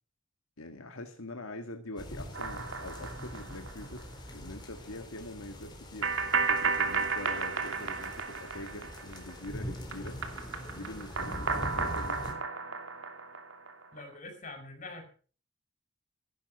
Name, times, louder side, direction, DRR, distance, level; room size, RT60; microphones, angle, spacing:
voice 1, 0.6-10.2 10.7-12.3, left 2 dB, 80° left, 5 dB, 1.9 m, -44 dB
sound 1, 2.0-12.3, equal, 20° left, 4.0 m, -43 dB
sound 2, 2.3-4.0 4.3-4.4 6.0-9.5 9.8-14.0, right 4 dB, 65° right, 2.8 m, -33 dB
voice 2, 13.9-15.1, left 2 dB, 35° left, 6 dB, 6.4 m, -44 dB
16.0 x 12.0 x 6.6 m, 0.42 s
head